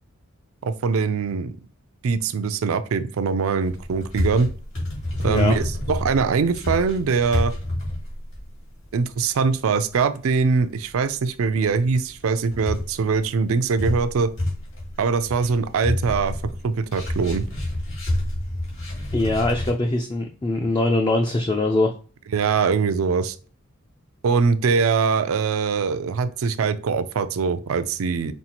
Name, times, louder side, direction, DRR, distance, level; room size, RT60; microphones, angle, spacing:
voice 1, 0.6-1.5 2.0-4.5 5.2-7.5 8.9-14.3 15.0-17.4 22.3-23.4 24.2-28.3, right 5 dB, 75° right, 12 dB, 0.4 m, -22 dB
sound 1, 3.7-9.1 9.4-9.5 10.0-10.5 10.9-11.0 11.2-11.3 11.6-11.9 12.2-19.7, left 1 dB, 65° left, 2.1 m, -28 dB
voice 2, 5.2-5.5 19.1-21.9, left 2 dB, 20° left, 3 dB, 0.3 m, -22 dB
5.4 x 2.4 x 2.9 m, 0.40 s
head